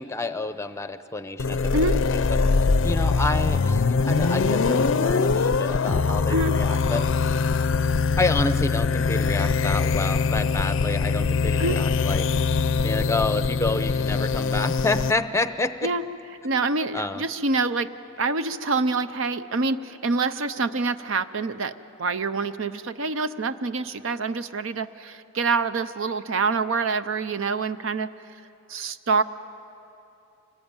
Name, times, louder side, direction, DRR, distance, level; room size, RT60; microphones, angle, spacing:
voice 1, 0.0-7.0 8.2-12.5 12.8-15.9 16.9-17.2, left 2 dB, 15° left, 11 dB, 0.6 m, -29 dB
sound 1, 1.4-15.1, left 4 dB, 60° left, 0.5 m, -23 dB
voice 2, 16.4-21.7 22.0-28.4 28.7-29.2, right 3 dB, 60° right, 12 dB, 0.6 m, -26 dB
25.5 x 19.5 x 8.9 m, 2.8 s
head